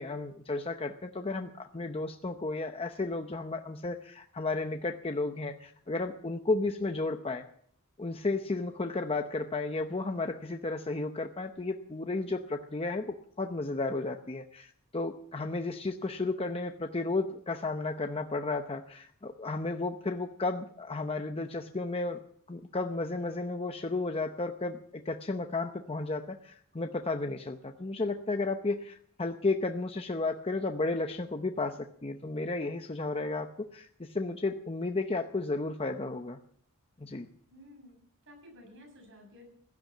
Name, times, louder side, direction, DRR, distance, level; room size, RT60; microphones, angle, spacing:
voice 1, 0.0-7.4 8.0-22.2 22.5-36.4 37.0-37.3, left 3 dB, 25° left, 5 dB, 0.8 m, -33 dB
voice 2, 37.5-39.5, left 1 dB, 60° right, 3 dB, 7.3 m, -53 dB
16.0 x 12.0 x 7.4 m, 0.63 s
head